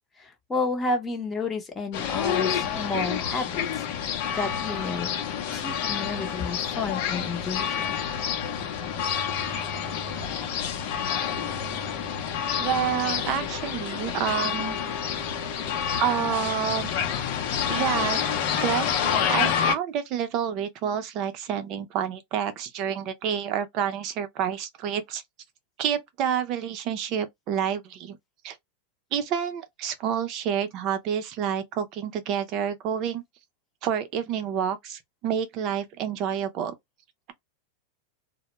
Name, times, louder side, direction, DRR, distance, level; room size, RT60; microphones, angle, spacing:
voice 1, 0.2-4.1 4.3-5.1 5.5-7.9, left 3 dB, 15° left, 0.8 m, -31 dB
sound 1, 1.9-19.7, left 8 dB, 55° left, 0.7 m, -28 dB
voice 2, 12.6-14.8 16.0-16.9 17.7-18.2 18.6-25.2 25.8-28.2 28.4-28.6 29.1-33.2 33.8-36.7, right 8 dB, 45° right, 0.6 m, -28 dB
2.2 x 2.1 x 2.9 m
supercardioid pair, 130°, 0 cm